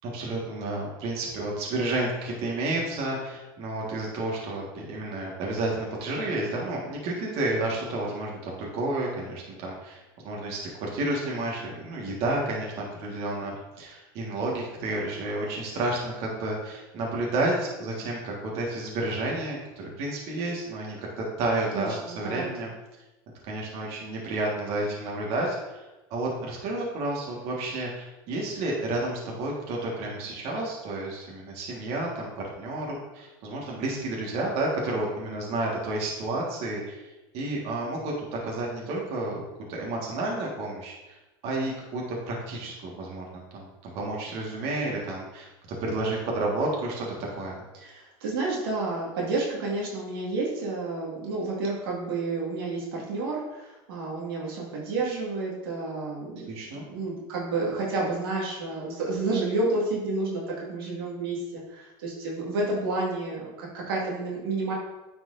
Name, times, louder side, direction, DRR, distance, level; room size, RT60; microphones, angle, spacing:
voice 1, 0.0-22.7 23.4-25.8 26.1-32.3 32.6-39.4 39.7-41.2 41.4-47.1 47.4-47.6 56.5-56.8, right 2 dB, 60° right, -2 dB, 1.6 m, -31 dB
voice 2, 21.7-22.5 47.7-64.7, right 3 dB, 90° right, -4 dB, 1.9 m, -30 dB
9.6 x 4.6 x 2.6 m, 1.0 s
supercardioid pair, 110°, 12 cm